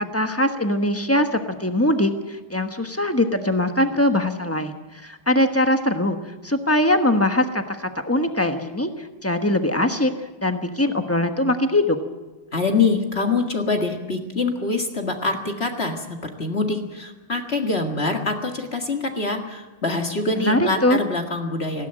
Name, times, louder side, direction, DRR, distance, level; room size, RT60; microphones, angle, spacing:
voice 1, 0.0-4.7 5.0-6.2 6.4-10.1 10.4-12.0 20.3-21.0, left 1 dB, 10° left, 6 dB, 0.7 m, -21 dB
voice 2, 12.5-21.9, left 3 dB, 30° left, 3 dB, 1.9 m, -24 dB
19.0 x 17.0 x 9.0 m, 1.2 s
omnidirectional pair, 2.4 m